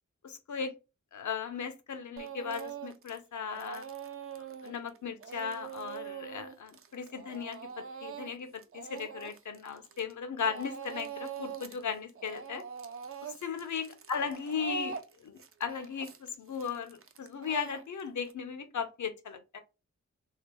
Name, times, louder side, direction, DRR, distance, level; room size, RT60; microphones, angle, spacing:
voice 1, 0.2-0.7 1.1-3.9 4.6-12.6 13.2-19.6, left 6 dB, 80° left, 0.7 m, -37 dB
Speech / Crying sobbing, 2.2-3.2 3.5-10.1 10.4-11.8 12.1-18.3, right 7 dB, 50° right, 0.4 m, -43 dB
2.9 x 2.8 x 3.4 m
wide cardioid pair, 85°, 29 cm